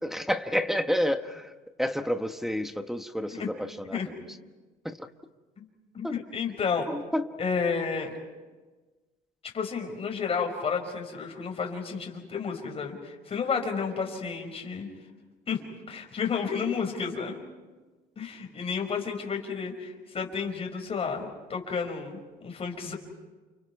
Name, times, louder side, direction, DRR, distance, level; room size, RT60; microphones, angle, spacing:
voice 1, 0.0-1.5 1.8-4.0 4.8-5.1 6.0-6.2 6.9-7.3, equal, ahead, 7 dB, 1.1 m, -29 dB
voice 2, 5.9-6.9 7.4-8.1 9.5-14.9 15.5-15.6 15.9-17.4 18.2-22.9, left 5 dB, 35° left, 3 dB, 5.0 m, -31 dB
30.0 x 29.5 x 4.8 m, 1.3 s
cardioid pair, 110°, 17 cm